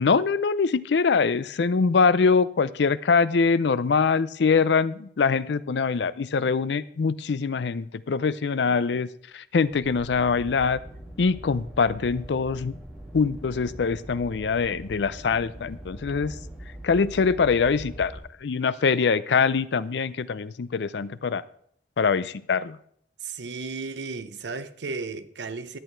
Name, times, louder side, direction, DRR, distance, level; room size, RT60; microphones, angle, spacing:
voice 1, 0.0-9.1 9.3-10.8 11.2-12.7 13.1-16.4 16.8-18.1 18.4-21.4 22.0-22.8, left 5 dB, 75° left, 0.5 m, -23 dB
sound 1, 9.7-18.2, right 1 dB, 5° right, 2.1 m, -42 dB
voice 2, 23.2-25.8, right 4 dB, 80° right, 0.7 m, -34 dB
11.0 x 8.5 x 4.5 m
head